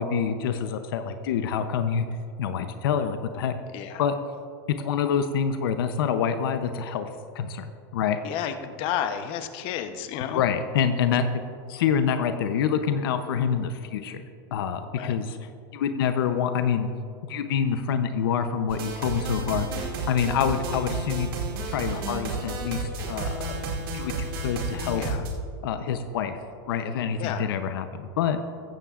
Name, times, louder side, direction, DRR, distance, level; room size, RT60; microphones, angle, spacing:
voice 1, 0.0-2.1 2.4-3.5 4.0-4.2 4.8-7.1 7.3-7.7 7.9-8.2 10.3-11.4 11.7-14.2 14.5-15.4 15.7-16.9 17.2-19.7 20.1-21.3 21.6-25.0 25.6-26.4 26.7-28.4, left 7 dB, 85° left, 8 dB, 0.7 m, -26 dB
voice 2, 8.2-10.4 14.9-15.2 25.0-25.2 27.2-27.5, left 9 dB, 50° left, 8 dB, 0.9 m, -31 dB
sound 1, 18.7-25.3, right 3 dB, 85° right, 2.4 m, -31 dB
15.0 x 14.5 x 2.5 m, 2.4 s
supercardioid pair, 130°, 12 cm